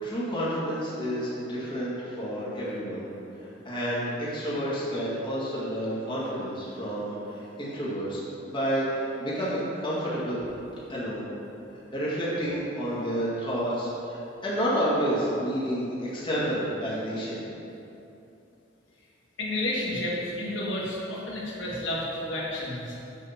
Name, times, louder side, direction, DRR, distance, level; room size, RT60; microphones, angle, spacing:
voice 1, 0.0-3.1 3.4-10.4 10.9-11.2 11.9-17.4, equal, 25° left, -8 dB, 2.0 m, -30 dB
voice 2, 19.4-23.0, left 1 dB, 90° left, -6 dB, 1.9 m, -31 dB
8.1 x 5.2 x 5.9 m, 2.9 s
head